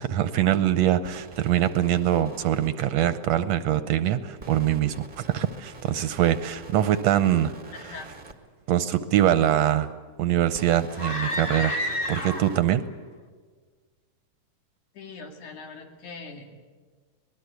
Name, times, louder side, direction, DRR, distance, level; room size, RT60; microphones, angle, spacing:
voice 1, 0.0-7.5 8.7-9.9 10.2-12.8, right 11 dB, 70° right, 12 dB, 1.8 m, -23 dB
sound 1, 1.0-2.7 4.4-8.3 10.5-12.6, right 3 dB, 20° right, 1.2 m, -46 dB
voice 2, 7.7-8.1 14.9-16.5, left 4 dB, 80° left, 3 dB, 3.9 m, -41 dB
sound 2, 11.0-12.7, left 1 dB, 35° left, 0.9 m, -30 dB
25.0 x 19.5 x 8.2 m, 1.5 s
omnidirectional pair, 3.5 m